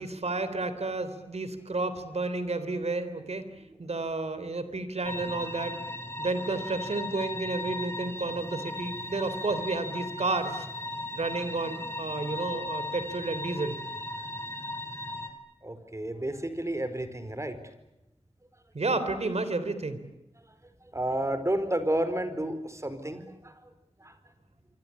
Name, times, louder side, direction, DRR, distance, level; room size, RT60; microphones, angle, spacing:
voice 1, 0.0-3.4 3.8-5.8 6.2-10.7 11.1-13.7 18.7-20.0, right 3 dB, 80° right, 12 dB, 3.7 m, -31 dB
sound 1, 5.0-15.3, left 1 dB, 25° left, 4.1 m, -37 dB
voice 2, 15.6-17.6 20.9-23.5 24.0-24.1, right 1 dB, 25° right, 11 dB, 4.6 m, -31 dB
27.0 x 25.0 x 8.5 m, 0.92 s
wide cardioid pair, 60°, 11 cm